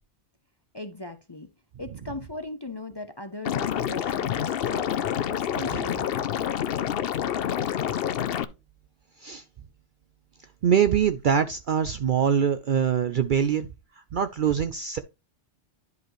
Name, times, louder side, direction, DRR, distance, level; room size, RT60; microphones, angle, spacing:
voice 1, 0.7-1.5 1.8-6.2, left 2 dB, 30° left, 0.5 m, -39 dB
Liquid, 3.4-8.4, left 9 dB, 60° left, 0.7 m, -28 dB
voice 2, 10.6-13.7 14.1-15.0, right 8 dB, 60° right, 0.5 m, -23 dB
10.5 x 5.1 x 3.1 m
omnidirectional pair, 1.2 m